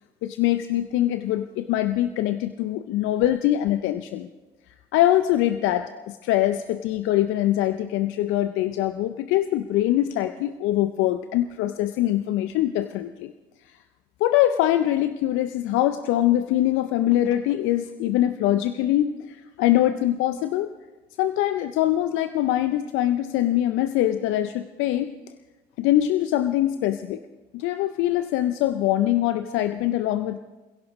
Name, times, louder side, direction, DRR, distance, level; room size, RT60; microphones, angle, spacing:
voice 1, 0.2-4.3 4.9-13.3 14.2-20.7 21.2-25.1 25.8-27.2 27.5-30.4, left 13 dB, 75° left, 10 dB, 0.6 m, -23 dB
27.0 x 16.5 x 3.1 m, 1.2 s
hypercardioid pair, 45°, 21 cm